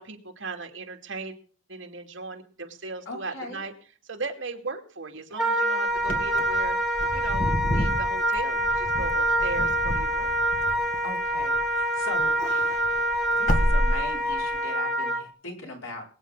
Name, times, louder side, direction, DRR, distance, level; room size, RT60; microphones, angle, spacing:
voice 1, 0.0-1.3 1.7-3.7 4.0-6.8 7.1-10.4, right 3 dB, 65° right, 3 dB, 2.5 m, -37 dB
voice 2, 3.1-3.6 11.0-12.3 13.4-16.0, left 2 dB, 80° left, 0 dB, 5.1 m, -39 dB
Wind instrument woodwind instrument, 5.4-15.2, right 1 dB, ahead, 1.5 m, -26 dB
Wind / Car, 6.0-11.8 12.1-14.6, equal, 40° left, 1.7 m, -29 dB
22.5 x 9.2 x 3.8 m, 0.43 s
head